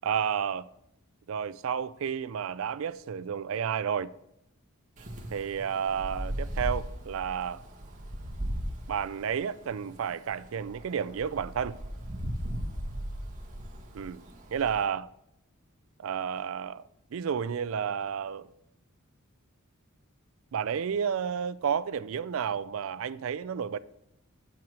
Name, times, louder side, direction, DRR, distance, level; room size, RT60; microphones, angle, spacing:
voice 1, 0.0-0.7 1.3-4.1 5.3-7.6 8.9-11.7 14.0-14.2 14.5-15.1 16.0-16.8 17.1-18.5 20.5-23.8, right 7 dB, 65° right, 0.4 m, -31 dB
Wind, 5.0-14.8, equal, 35° right, 1.5 m, -37 dB
8.8 x 5.8 x 6.2 m
head